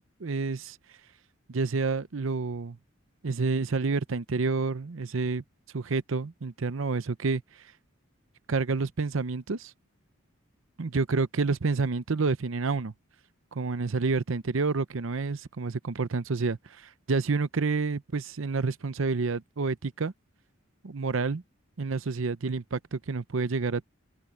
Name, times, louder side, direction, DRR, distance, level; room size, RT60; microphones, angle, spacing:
voice 1, 0.2-0.8 1.5-2.8 3.2-5.4 5.7-7.4 8.5-9.7 10.8-12.9 13.5-20.1 20.8-21.4 21.8-23.9, right 4 dB, 70° right, 0.7 m, -29 dB
head